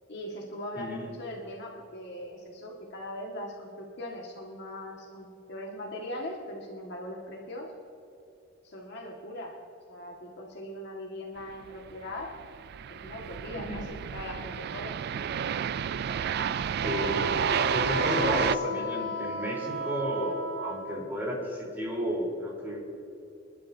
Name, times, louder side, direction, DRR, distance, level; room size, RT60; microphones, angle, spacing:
voice 1, 0.1-7.7 8.6-9.6 9.9-12.3 12.9-15.0 16.2-16.6 17.9-18.5, left 1 dB, 55° left, -1 dB, 1.9 m, -40 dB
voice 2, 0.8-1.1 13.5-13.8 16.8-17.2 17.7-22.8, equal, 10° right, -5 dB, 3.8 m, -32 dB
sound 1, 11.9-18.6, right 8 dB, 50° right, 0.3 m, -30 dB
Wind instrument woodwind instrument, 16.8-21.0, left 1 dB, 85° right, 1.5 m, -34 dB
24.5 x 12.0 x 2.8 m, 2.8 s
head